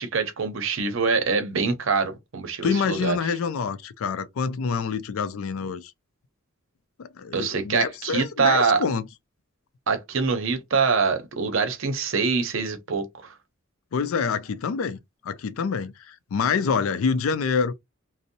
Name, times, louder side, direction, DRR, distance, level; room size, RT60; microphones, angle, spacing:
voice 1, 0.0-3.2 7.3-8.8 9.9-13.1, right 5 dB, 65° right, 0.6 m, -24 dB
voice 2, 2.6-5.9 7.0-9.1 13.9-17.8, left 5 dB, 80° left, 0.4 m, -26 dB
2.6 x 2.0 x 2.6 m
head